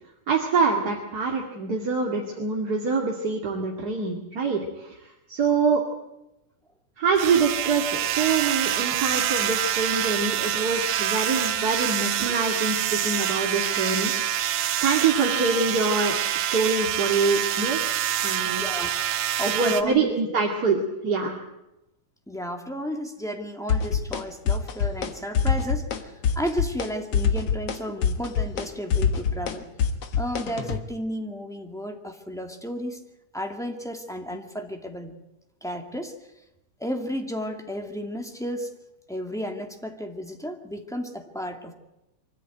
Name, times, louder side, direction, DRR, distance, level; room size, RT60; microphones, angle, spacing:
voice 1, 0.3-5.8 7.0-14.1 14.8-17.8 18.2-18.6 19.5-21.3, right 4 dB, 30° right, -1 dB, 2.3 m, -25 dB
sound 1, 7.2-19.8, right 11 dB, 80° right, 2.5 m, -26 dB
voice 2, 18.4-20.1 22.3-29.7 30.2-33.0 33.3-35.1 35.6-36.1 36.8-38.7 39.1-41.7, equal, ahead, 3 dB, 1.2 m, -33 dB
sound 2, 23.7-24.2 24.5-25.1 25.3-26.0 26.2-26.9 27.1-30.8, left 6 dB, 55° left, 2.2 m, -24 dB
25.0 x 14.5 x 9.2 m, 0.93 s
omnidirectional pair, 3.8 m